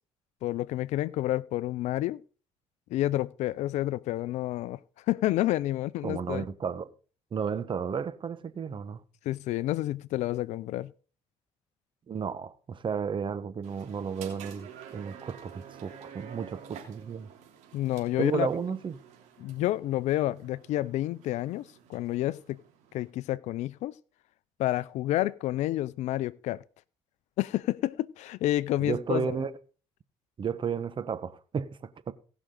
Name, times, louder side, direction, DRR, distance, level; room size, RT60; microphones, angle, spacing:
voice 1, 0.4-2.2 2.9-4.8 5.1-6.4 9.3-10.9 17.7-18.5 19.4-21.6 21.9-22.6 22.9-23.9 24.6-26.6 27.4-29.4, left 15 dB, 75° left, 0.5 m, -29 dB
voice 2, 6.0-6.9 7.3-9.0 12.1-17.3 18.2-19.0 28.8-29.5 30.4-32.1, right 6 dB, 45° right, 1.1 m, -33 dB
sound 1, 13.6-23.1, right 8 dB, 75° right, 3.0 m, -50 dB
18.0 x 6.1 x 3.8 m
supercardioid pair, 70°, 12 cm